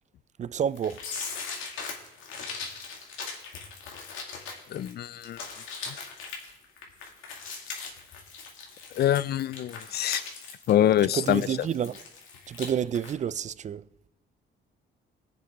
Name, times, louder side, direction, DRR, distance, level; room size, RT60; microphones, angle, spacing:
voice 1, 0.4-1.0 11.1-12.0 12.5-13.8, right 8 dB, 35° right, 0.4 m, -29 dB
sound 1, 0.8-12.7 12.9-13.1, left 5 dB, 85° left, 2.1 m, -39 dB
voice 2, 4.7-5.4 9.0-10.2 10.7-11.4, left 11 dB, 55° left, 0.4 m, -24 dB
21.0 x 7.3 x 3.5 m
cardioid pair, 90°, 20 cm